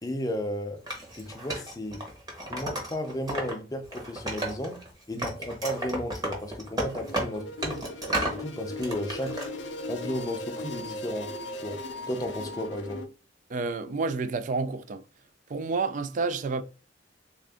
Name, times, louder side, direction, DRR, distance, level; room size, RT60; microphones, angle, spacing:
voice 1, 0.0-0.8 1.2-2.0 2.5-4.8 5.1-7.8 8.2-9.4 9.9-11.3 11.6-11.8 12.1-13.0, left 1 dB, 20° left, 0.5 m, -34 dB
Wood, 0.9-3.5 3.8-4.9 5.2-8.4 8.8-9.5, right 1 dB, 20° right, 1.0 m, -33 dB
sound 1, 7.0-13.0, left 2 dB, 70° left, 0.6 m, -38 dB
voice 2, 13.5-15.0 15.5-16.6, right 4 dB, 40° right, 0.3 m, -29 dB
3.5 x 2.5 x 3.5 m
head